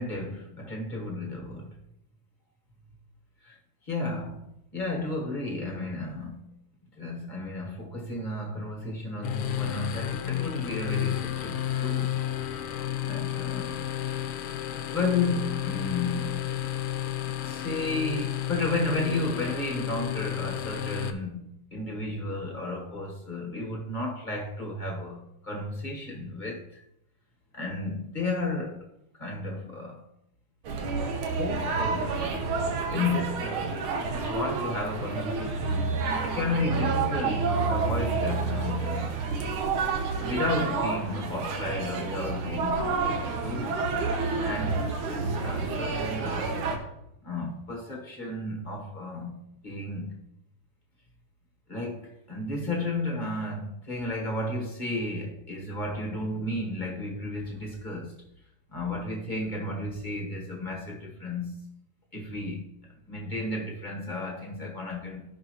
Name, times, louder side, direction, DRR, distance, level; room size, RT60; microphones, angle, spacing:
voice 1, 0.0-1.7 3.4-3.6 3.8-4.4 4.7-6.4 7.0-12.2 13.0-13.8 14.9-16.4 17.2-21.4 21.7-26.8 27.5-28.9 29.2-30.0 30.8-33.8 34.1-39.2 40.2-43.9 44.4-46.6 47.2-50.2 51.7-58.2 58.7-61.5 62.1-65.2, left 2 dB, 30° left, 1.0 m, -33 dB
sound 1, 9.2-21.1, left 11 dB, 80° left, 1.5 m, -32 dB
sound 2, 30.6-46.8, right 4 dB, 75° right, 1.8 m, -29 dB
15.5 x 5.5 x 3.0 m
omnidirectional pair, 2.4 m